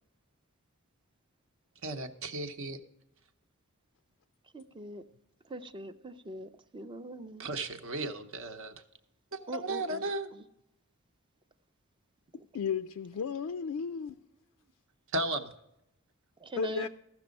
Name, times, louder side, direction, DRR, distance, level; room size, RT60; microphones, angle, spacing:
voice 1, 1.8-2.8 7.4-8.7 9.3-10.3 15.1-15.5, right 2 dB, 65° right, 0.9 m, -35 dB
voice 2, 4.5-5.0 5.4-7.5 9.5-10.4 12.4-12.5 16.4-16.9, right 1 dB, 20° right, 0.5 m, -42 dB
voice 3, 12.5-14.2 16.6-16.9, left 6 dB, 80° left, 0.4 m, -33 dB
14.5 x 6.1 x 5.2 m
head